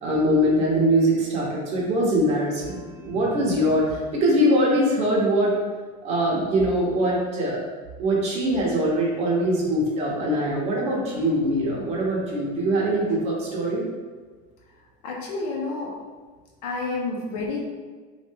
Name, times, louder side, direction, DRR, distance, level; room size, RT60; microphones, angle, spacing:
voice 1, 0.0-5.5 6.0-7.6 8.0-13.9, right 1 dB, 30° right, -4 dB, 0.8 m, -22 dB
voice 2, 15.0-16.0 16.6-17.6, left 3 dB, 80° left, -1 dB, 0.9 m, -30 dB
3.1 x 2.5 x 3.4 m, 1.4 s
cardioid pair, 170°, 21 cm